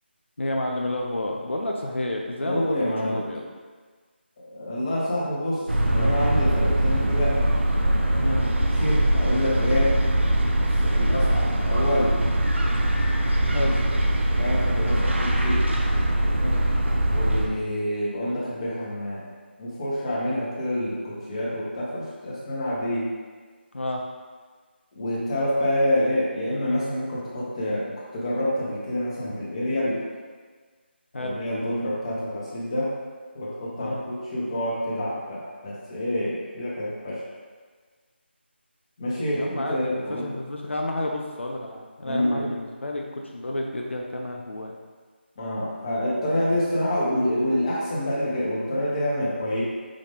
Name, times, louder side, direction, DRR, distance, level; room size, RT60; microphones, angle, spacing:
voice 1, 0.4-3.5 8.2-8.5 13.5-13.8 16.4-16.6 23.7-24.0 31.1-31.4 33.8-34.0 39.4-44.7, left 1 dB, 80° left, 0 dB, 0.5 m, -30 dB
voice 2, 2.4-3.3 4.5-5.6 5.9-7.4 8.8-12.1 14.3-15.6 17.1-19.2 19.6-23.1 25.0-30.0 31.1-32.9 33.3-37.2 39.0-40.2 42.0-42.4 45.4-49.6, left 1 dB, 30° left, -7 dB, 1.1 m, -27 dB
sound 1, 5.7-17.5, right 1 dB, 85° right, 0.6 m, -22 dB
4.9 x 2.8 x 3.6 m, 1.5 s
figure-of-eight pair, 160°, 6 cm